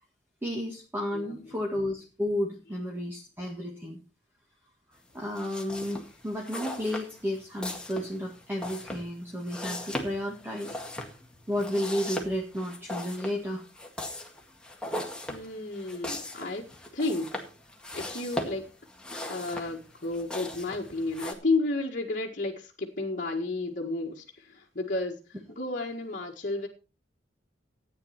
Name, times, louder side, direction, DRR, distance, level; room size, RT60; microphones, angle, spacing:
voice 1, 0.4-4.0 5.1-10.8 11.5-13.6, left 1 dB, 10° right, -1 dB, 1.9 m, -32 dB
voice 2, 1.1-1.6 15.3-16.6 16.9-17.3 17.9-18.6 19.3-26.7, left 2 dB, 45° left, -2 dB, 1.7 m, -32 dB
sound 1, 5.3-21.3, left 1 dB, 5° left, 1.9 m, -39 dB
13.5 x 9.2 x 4.3 m, 0.33 s
head